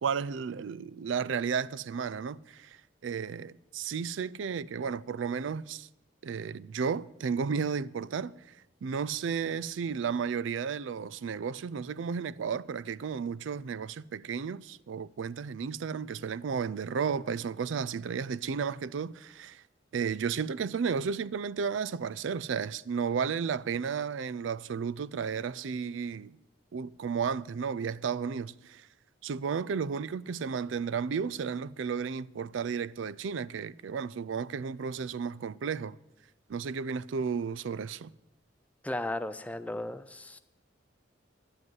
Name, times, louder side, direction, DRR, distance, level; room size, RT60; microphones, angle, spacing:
voice 1, 0.0-2.8 3.0-5.9 6.2-8.4 8.8-19.6 19.9-26.4 26.7-28.9 29.2-36.0 36.5-38.1, right 6 dB, 80° right, 0.4 m, -33 dB
voice 2, 38.8-40.4, left 1 dB, 5° left, 0.4 m, -35 dB
10.5 x 7.7 x 9.6 m
head